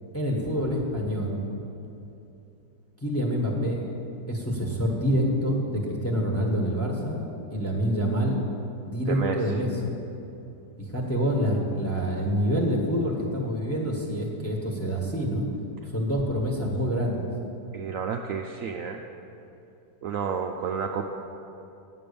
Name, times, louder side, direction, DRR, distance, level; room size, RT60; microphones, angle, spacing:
voice 1, 0.1-1.4 3.0-3.8 4.3-7.2 7.5-8.4 8.9-9.9 10.9-15.5 15.9-17.2, equal, 10° left, 0 dB, 1.2 m, -26 dB
voice 2, 9.1-9.4 17.7-19.0 20.0-21.1, right 6 dB, 80° right, 3 dB, 0.7 m, -30 dB
9.1 x 7.6 x 6.9 m, 2.8 s
omnidirectional pair, 1.9 m